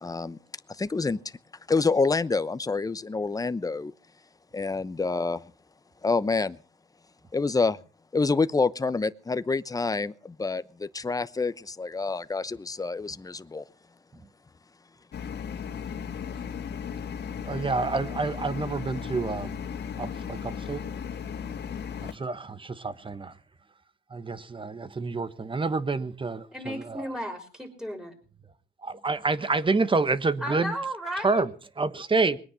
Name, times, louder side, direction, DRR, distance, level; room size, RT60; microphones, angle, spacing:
voice 1, 0.0-0.4 0.7-1.2 1.7-3.9 4.5-5.4 6.0-6.6 7.3-7.8 8.1-13.6, left 4 dB, 20° left, 0.9 m, -27 dB
sound 1, 15.1-22.1, left 7 dB, 55° left, 2.1 m, -36 dB
voice 2, 17.4-19.5 20.0-20.8 22.0-23.4 24.1-27.1 28.8-30.7 31.2-32.4, right 3 dB, 25° right, 1.3 m, -28 dB
voice 3, 26.5-28.2 30.4-31.4, equal, 5° right, 5.5 m, -34 dB
21.5 x 9.6 x 7.1 m
cardioid pair, 90°, 20 cm